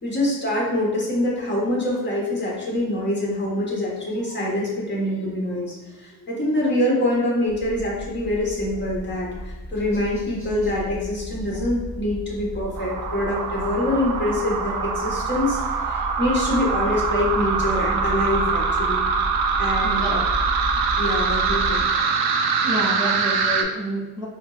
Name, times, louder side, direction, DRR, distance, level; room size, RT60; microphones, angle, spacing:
voice 1, 0.0-19.0 19.6-20.2 21.0-22.0, left 1 dB, 30° left, -4 dB, 1.1 m, -25 dB
sound 1, 7.5-21.8, equal, 5° left, 1.3 m, -33 dB
sound 2, 12.8-23.6, right 5 dB, 75° right, 0.5 m, -24 dB
voice 2, 19.8-20.2 22.1-22.2 22.6-24.3, right 1 dB, 10° right, -7 dB, 0.4 m, -29 dB
4.3 x 2.0 x 2.3 m, 1.1 s
cardioid pair, 100°, 38 cm